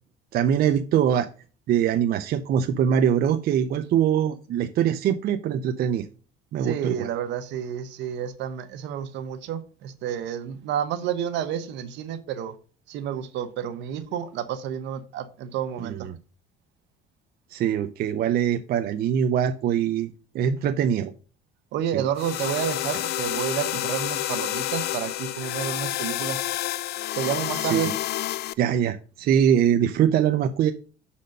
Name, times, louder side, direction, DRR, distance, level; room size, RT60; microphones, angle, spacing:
voice 1, 0.3-1.3 1.7-6.1 6.5-7.1 15.8-16.2 17.5-21.1 21.9-22.0 27.5-27.9 28.6-30.7, right 9 dB, 55° right, 0.5 m, -23 dB
voice 2, 6.6-12.5 12.9-16.1 21.7-26.5 27.2-27.9, right 9 dB, 75° right, 1.0 m, -30 dB
sound 1, 22.2-28.5, left 15 dB, 65° left, 0.4 m, -29 dB
6.5 x 4.2 x 6.4 m
cardioid pair, 120°, 19 cm